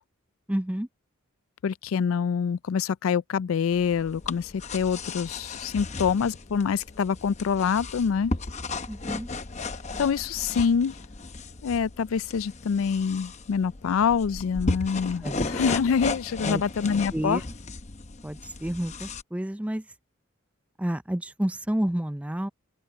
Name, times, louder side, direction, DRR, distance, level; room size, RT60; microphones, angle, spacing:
voice 1, 0.5-0.9 8.9-9.3 15.2-15.5 16.4-16.6 17.1-17.4 18.2-19.8 20.8-22.5, right 1 dB, 5° right, 0.4 m, -30 dB
voice 2, 1.6-8.3 10.0-11.0 11.6-17.4, left 6 dB, 85° left, 0.4 m, -26 dB
sound 1, 3.7-19.2, left 3 dB, 35° left, 0.8 m, -35 dB
open air
head